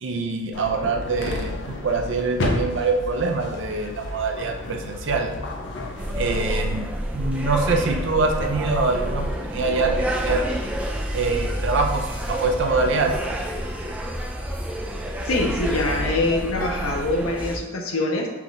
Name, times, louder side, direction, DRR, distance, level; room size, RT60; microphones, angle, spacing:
voice 1, 0.0-5.3 6.2-6.9 7.1-10.4 11.1-13.2, right 3 dB, 60° right, 3 dB, 0.5 m, -24 dB
sound 1, 0.5-6.6, left 2 dB, 55° left, 0.6 m, -31 dB
sound 2, 6.0-17.6, right 1 dB, 5° right, 0.3 m, -28 dB
voice 2, 15.2-18.3, left 2 dB, 85° left, 1 dB, 0.8 m, -24 dB
5.8 x 2.4 x 3.8 m, 1.2 s
head